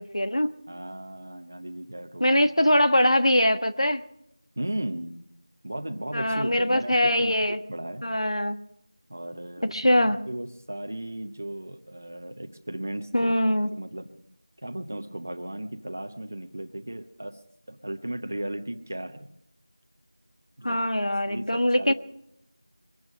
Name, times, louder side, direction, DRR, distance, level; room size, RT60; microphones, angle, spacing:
voice 1, 0.0-0.5 2.2-4.0 6.1-7.6 8.0-8.6 9.6-10.2 13.1-13.7 20.6-21.9, left 1 dB, 90° left, 9 dB, 1.4 m, -22 dB
voice 2, 0.7-2.4 4.6-5.1 5.6-8.0 9.1-13.4 13.7-14.1 14.6-17.4 17.7-19.3 20.6-20.8 21.3-21.9, right 1 dB, 25° right, 7 dB, 0.8 m, -36 dB
23.0 x 10.0 x 6.2 m, 0.77 s
figure-of-eight pair, 180°, 3 cm